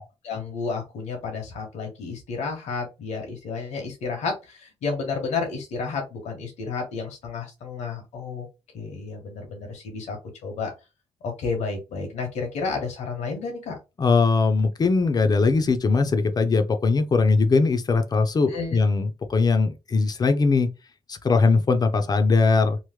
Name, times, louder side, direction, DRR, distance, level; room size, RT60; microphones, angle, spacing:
voice 1, 0.0-8.5 8.7-10.2 10.4-10.7 11.2-13.8 18.5-18.8, left 4 dB, 85° left, 1.3 m, -31 dB
voice 2, 14.0-20.7 21.1-22.8, left 4 dB, 35° left, 0.6 m, -20 dB
3.1 x 2.1 x 3.4 m
cardioid pair, 100°, 11 cm